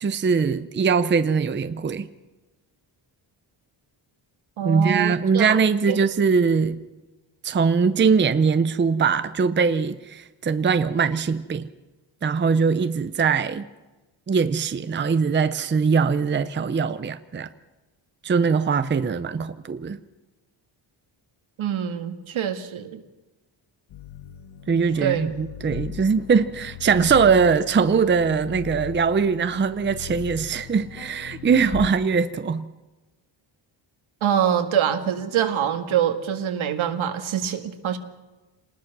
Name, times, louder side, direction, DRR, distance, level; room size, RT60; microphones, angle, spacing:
voice 1, 0.0-2.1 4.6-6.8 7.4-11.7 12.2-13.7 14.3-17.5 18.2-20.0 24.7-32.7, right 5 dB, 25° right, 0.6 m, -21 dB
voice 2, 4.6-5.6 5.9-6.0 21.6-23.0 25.0-25.3 34.2-38.0, right 9 dB, 80° right, 2.1 m, -25 dB
sound 1, 23.9-31.9, left 12 dB, 80° left, 1.1 m, -38 dB
28.0 x 19.5 x 6.1 m
wide cardioid pair, 170°, 47 cm